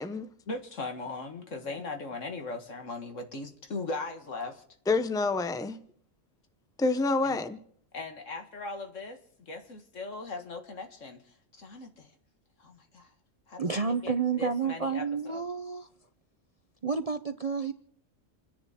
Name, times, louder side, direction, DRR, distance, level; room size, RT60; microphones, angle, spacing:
voice 1, 0.5-4.6 7.2-7.4 7.9-12.1 12.6-13.1 13.5-15.4, left 3 dB, 65° left, 2.1 m, -39 dB
voice 2, 4.9-5.8 6.8-7.6, left 3 dB, 5° left, 0.8 m, -27 dB
voice 3, 13.6-15.9 16.8-17.7, right 5 dB, 35° right, 0.6 m, -30 dB
29.5 x 10.5 x 4.3 m
omnidirectional pair, 1.4 m